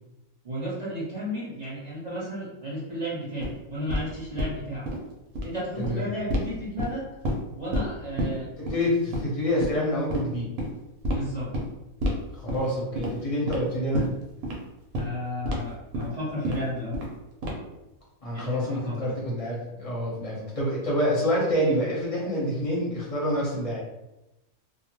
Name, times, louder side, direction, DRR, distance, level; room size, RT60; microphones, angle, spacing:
voice 1, 0.4-4.9 5.4-7.0 7.6-8.5 11.1-11.5 15.0-17.0 18.3-19.0, equal, 30° right, -9 dB, 1.0 m, -33 dB
sound 1, 3.4-3.5 3.9-4.0 4.4-4.5 4.8-5.0 5.3-5.5 5.8-5.9 6.3-6.4 6.8-7.4 7.7-7.9 8.2-8.3 8.7-8.8 9.1-9.3 9.6-9.7 10.1-10.2 10.6-10.7 11.0-11.2 11.5-11.6 12.0-12.2 12.5-12.7 12.9-13.1 13.5-13.6 13.9-14.1 14.4-14.6 14.9-15.1 15.4-15.6 15.9-16.1 16.4-16.6 16.9-17.1 17.4-17.7, equal, 80° right, 1.1 m, -28 dB
voice 2, 8.6-10.5 12.4-14.0 18.2-23.8, equal, 30° left, -5 dB, 0.7 m, -27 dB
2.7 x 2.2 x 3.0 m, 0.96 s
omnidirectional pair, 1.5 m